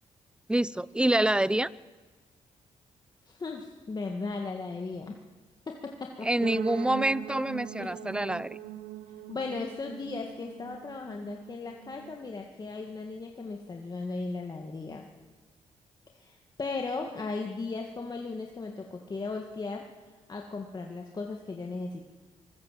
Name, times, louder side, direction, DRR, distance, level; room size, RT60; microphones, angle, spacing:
voice 1, 0.5-1.7 6.2-8.6, right 1 dB, 5° right, 19 dB, 0.6 m, -26 dB
voice 2, 3.3-5.2 5.7-6.3 7.8-7.9 9.3-15.1 16.2-19.8 20.3-22.0, left 3 dB, 35° left, 2 dB, 2.0 m, -36 dB
sound 1, 6.4-12.3, right 13 dB, 85° right, 1.2 m, -42 dB
24.0 x 20.5 x 7.6 m, 1.3 s
cardioid pair, 85°, 12 cm